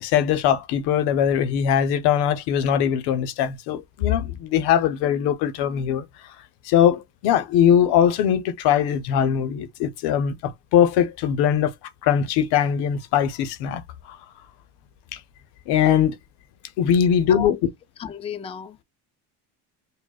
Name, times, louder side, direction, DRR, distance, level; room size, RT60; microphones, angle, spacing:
voice 1, 0.0-6.1 6.6-11.7 12.0-13.8 14.1-14.2 15.1-15.2 15.7-16.2 16.8-17.6, left 9 dB, 85° left, 0.7 m, -21 dB
voice 2, 17.0-17.6 18.0-18.8, left 8 dB, 15° left, 0.4 m, -34 dB
4.9 x 2.2 x 2.3 m
cardioid pair, 110°, 39 cm